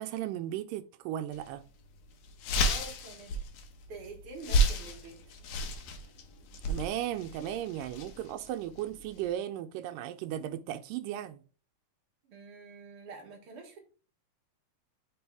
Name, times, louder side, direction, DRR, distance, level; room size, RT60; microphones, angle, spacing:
voice 1, 0.0-1.6 6.6-11.4, right 12 dB, 85° right, 2.2 m, -36 dB
sound 1, 1.3-1.5 1.9-2.0 2.2-9.3, right 1 dB, 75° left, 2.1 m, -32 dB
voice 2, 2.6-3.4 3.9-5.3 12.2-13.8, right 3 dB, 55° right, 1.7 m, -47 dB
6.0 x 3.4 x 4.6 m
omnidirectional pair, 3.9 m